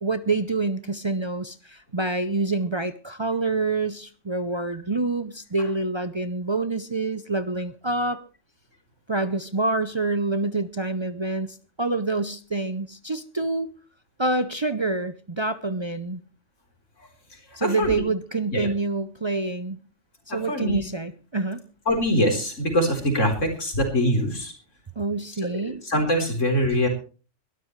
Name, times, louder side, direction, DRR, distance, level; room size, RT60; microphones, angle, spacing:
voice 1, 0.0-8.2 9.1-13.7 14.2-16.2 17.6-19.8 20.3-21.7 25.0-25.8, right 3 dB, 30° right, 11 dB, 0.5 m, -27 dB
voice 2, 17.6-18.0 18.5-18.7 20.3-20.8 21.9-24.5 25.5-26.9, equal, 80° left, 3 dB, 4.4 m, -23 dB
22.0 x 12.5 x 3.2 m, 0.37 s
omnidirectional pair, 1.3 m